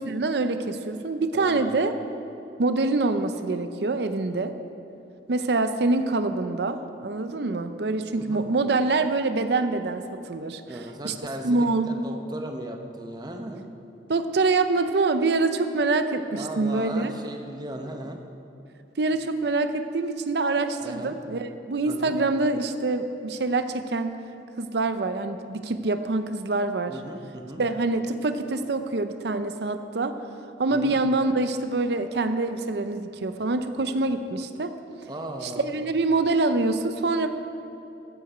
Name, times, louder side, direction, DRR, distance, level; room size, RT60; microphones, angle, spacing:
voice 1, 0.1-1.9 2.6-4.5 5.3-10.0 10.3-10.8 11.0-11.1 11.4-11.9 14.1-17.1 19.0-24.2 24.6-26.9 27.6-30.1 30.6-34.7 35.4-37.3, right 3 dB, 65° right, 9 dB, 0.6 m, -25 dB
voice 2, 1.3-1.8 8.1-8.4 10.7-13.7 16.3-18.2 20.8-21.2 21.9-22.1 26.9-27.6 30.7-31.0 35.1-35.8, right 1 dB, 25° right, 4 dB, 0.8 m, -37 dB
14.5 x 8.4 x 5.0 m, 2.9 s
head